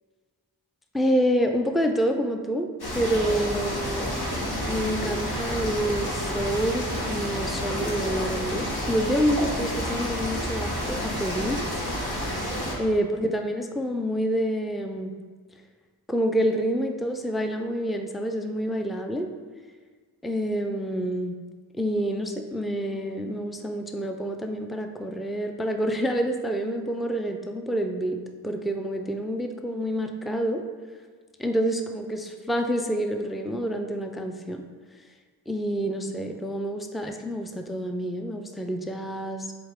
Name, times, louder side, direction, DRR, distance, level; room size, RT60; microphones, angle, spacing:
voice 1, 0.9-2.7 2.9-4.1 4.7-11.6 12.8-15.1 16.1-19.3 20.2-21.4 21.8-28.2 28.4-30.6 31.4-34.6 35.5-39.5, equal, ahead, 5 dB, 0.5 m, -27 dB
sound 1, 2.8-12.7, equal, 70° left, 1.7 m, -29 dB
7.1 x 3.9 x 3.6 m, 1.5 s
cardioid pair, 50°, 39 cm